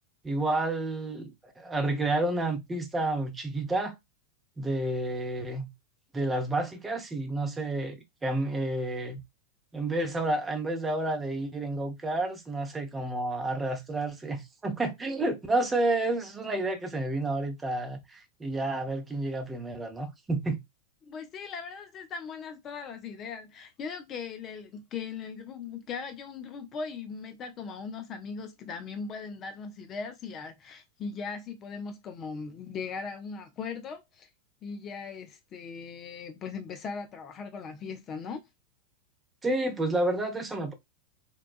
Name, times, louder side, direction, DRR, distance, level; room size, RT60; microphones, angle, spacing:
voice 1, 0.2-4.0 4.6-5.7 6.1-9.2 9.7-20.6 39.4-40.7, right 2 dB, 15° right, 0.7 m, -30 dB
voice 2, 21.1-34.3 34.6-38.4, left 5 dB, 30° left, 0.5 m, -39 dB
3.8 x 2.2 x 2.4 m
figure-of-eight pair, 90°, 0 cm